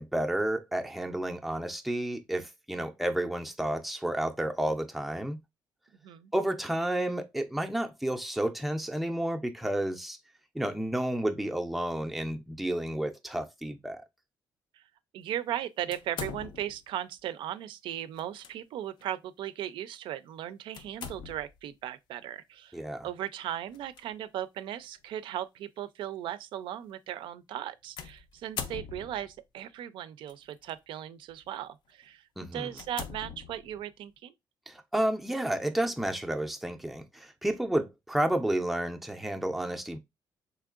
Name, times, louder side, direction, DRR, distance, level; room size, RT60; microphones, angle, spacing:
voice 1, 0.0-5.4 6.3-10.2 10.5-14.0 22.7-23.1 32.4-32.8 34.7-40.0, right 1 dB, ahead, 0.4 m, -31 dB
voice 2, 15.1-22.8 23.0-34.3, right 11 dB, 80° right, 0.4 m, -37 dB
sound 1, 15.9-16.9 18.2-18.5 19.0-19.1 20.7-21.6 23.7-24.0 24.8-24.9 28.0-29.4 30.3-30.7 31.3-31.5 32.0-32.1 32.7-33.9, left 7 dB, 65° left, 0.5 m, -41 dB
3.5 x 3.1 x 2.4 m
cardioid pair, 120°, 8 cm